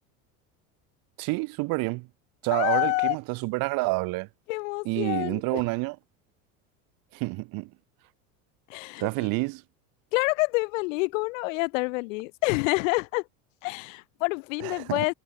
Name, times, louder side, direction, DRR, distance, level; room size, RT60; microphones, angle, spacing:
voice 1, 1.2-2.1 2.4-4.3 4.8-6.0 7.1-7.7 9.0-9.6 14.6-15.0, right 25 dB, 60° right, 3.2 m, -28 dB
voice 2, 2.5-3.2 4.5-5.6 8.7-9.3 10.1-13.2 13.6-15.1, left 26 dB, 80° left, 4.4 m, -27 dB
supercardioid pair, 125°, 38 cm